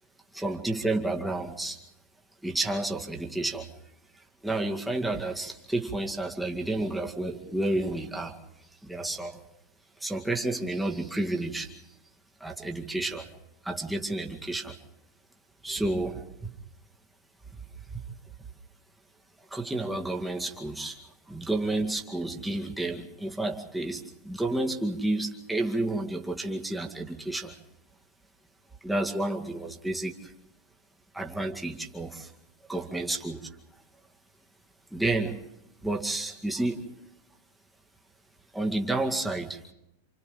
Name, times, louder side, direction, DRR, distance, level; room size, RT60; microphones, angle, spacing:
voice 1, 0.3-1.8 2.4-3.7 4.4-8.3 8.8-9.4 10.0-11.7 12.4-13.3 13.6-14.8 15.6-16.5 17.9-18.0 19.5-21.0 21.3-27.5 28.8-30.3 31.1-32.3 32.7-33.5 34.9-35.4 35.8-36.8 38.5-39.6, right 2 dB, 5° right, 1 dB, 2.1 m, -30 dB
29.0 x 27.5 x 3.7 m, 0.84 s
figure-of-eight pair, 90°, 0 cm